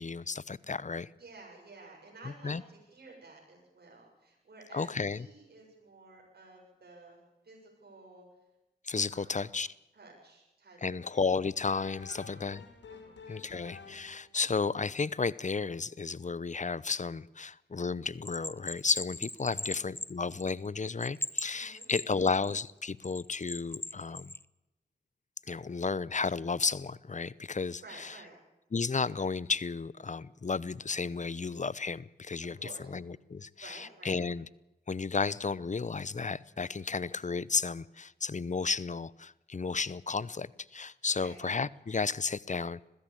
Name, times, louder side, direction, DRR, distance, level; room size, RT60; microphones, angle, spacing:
voice 1, 0.0-1.1 2.2-2.6 4.7-5.3 8.8-9.7 10.8-12.6 13.3-24.3 25.5-28.1 28.7-34.4 34.9-42.9, left 4 dB, 40° left, 0.8 m, -33 dB
voice 2, 1.2-7.2 7.4-8.3 9.1-9.5 9.9-11.1 12.1-12.5 12.9-13.6 19.4-19.8 21.5-22.3 27.8-28.4 32.4-32.9 33.6-34.2 41.2-41.4, right 3 dB, 60° right, 7.5 m, -53 dB
sound 1, 11.0-14.4, left 5 dB, 85° left, 2.3 m, -51 dB
Bell, 18.3-20.7 21.0-22.5 23.0-24.4, left 1 dB, 10° left, 0.9 m, -38 dB
21.0 x 15.5 x 8.7 m
cardioid pair, 40°, 18 cm